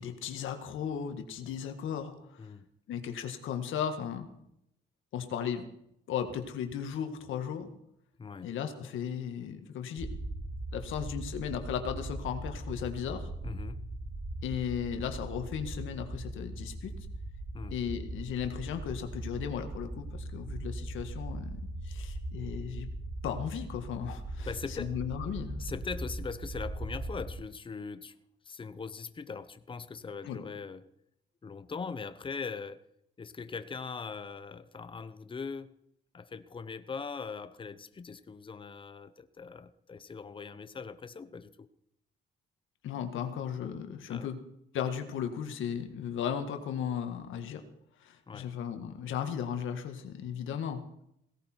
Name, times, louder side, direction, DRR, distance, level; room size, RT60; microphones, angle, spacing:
voice 1, 0.0-2.4 2.9-4.3 5.1-5.6 6.1-7.7 8.4-10.1 10.7-13.3 14.4-16.9 17.7-22.9 23.2-25.6 30.2-30.4 42.8-44.4 44.7-47.6 48.0-50.8, left 8 dB, 80° left, 7 dB, 1.8 m, -36 dB
sound 1, 10.0-27.3, right 1 dB, 30° right, 2.5 m, -40 dB
voice 2, 13.4-13.8 17.5-17.8 24.4-24.9 25.6-28.2 28.4-30.9 31.4-32.8 33.2-35.7 36.1-41.7 44.1-44.3 48.3-48.5, left 5 dB, 25° left, 11 dB, 0.8 m, -41 dB
17.0 x 17.0 x 4.6 m, 0.77 s
cardioid pair, 90°, 20 cm